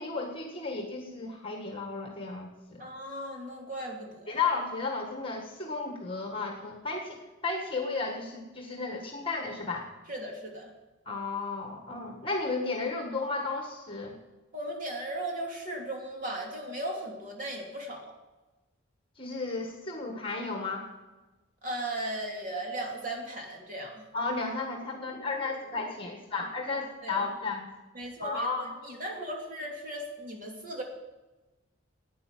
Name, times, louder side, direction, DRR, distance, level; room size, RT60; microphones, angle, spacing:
voice 1, 0.0-2.9 4.3-9.9 11.0-14.2 19.2-20.9 24.1-27.7 28.2-28.7, left 3 dB, 30° left, 2 dB, 1.6 m, -33 dB
voice 2, 2.8-4.4 10.1-10.7 14.5-18.1 21.6-24.0 27.0-27.2 27.9-28.5 28.8-30.8, right 1 dB, 45° right, 0 dB, 3.0 m, -37 dB
11.5 x 9.3 x 9.1 m, 1.1 s
head